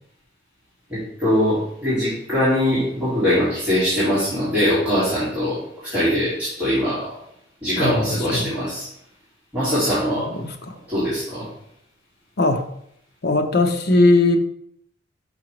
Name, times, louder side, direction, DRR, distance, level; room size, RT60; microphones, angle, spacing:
voice 1, 0.9-7.1 7.6-8.9 9.5-10.2 10.9-11.5, equal, 10° right, -14 dB, 2.5 m, -22 dB
voice 2, 10.3-10.7 12.4-12.6 13.2-14.4, left 2 dB, 60° left, 5 dB, 0.6 m, -19 dB
5.8 x 5.2 x 3.1 m, 0.73 s
head